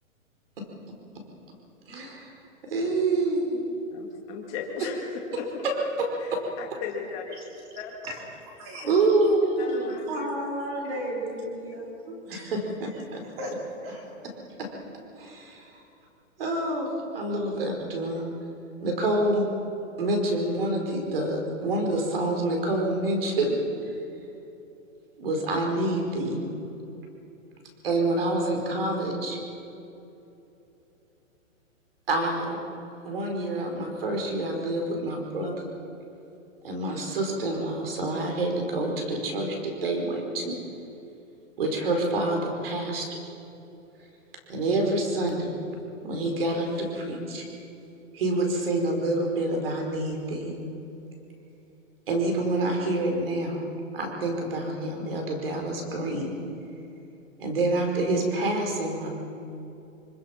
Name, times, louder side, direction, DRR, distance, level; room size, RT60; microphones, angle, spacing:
voice 1, 1.9-2.3 2.7-3.6 6.0-6.4 8.8-9.9 12.1-13.2 14.6-14.7 15.2-15.7 16.4-18.3 18.8-19.5 20.0-23.6 23.8-23.9 25.2-26.4 27.8-29.4 32.1-32.6 33.0-35.7 36.6-40.6 41.6-43.1 44.5-45.6 46.0-47.4 48.1-50.6 52.1-53.6 53.9-56.3 57.4-59.1, right 2 dB, 45° right, 2 dB, 4.8 m, -27 dB
voice 2, 3.9-5.4 6.2-6.3 6.6-7.3 9.6-10.3, left 6 dB, 15° left, -1 dB, 2.1 m, -37 dB
voice 3, 10.0-12.0 12.3-12.5 13.4-13.5 13.8-14.1, equal, 20° right, 0 dB, 3.4 m, -34 dB
26.0 x 25.0 x 5.8 m, 3.0 s
hypercardioid pair, 180°, 40 cm